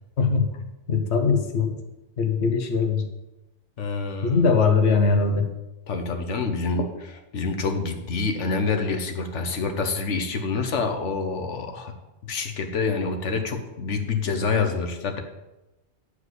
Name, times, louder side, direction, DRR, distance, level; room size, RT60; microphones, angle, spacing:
voice 1, 0.2-0.6 0.9-1.8 2.2-3.1 4.2-5.5 6.8-6.9, left 5 dB, 70° left, 5 dB, 1.3 m, -21 dB
voice 2, 3.8-4.4 5.9-6.9 7.3-11.9 12.3-15.2, left 4 dB, 90° left, 4 dB, 1.4 m, -27 dB
9.8 x 4.9 x 8.0 m, 0.99 s
omnidirectional pair, 1.2 m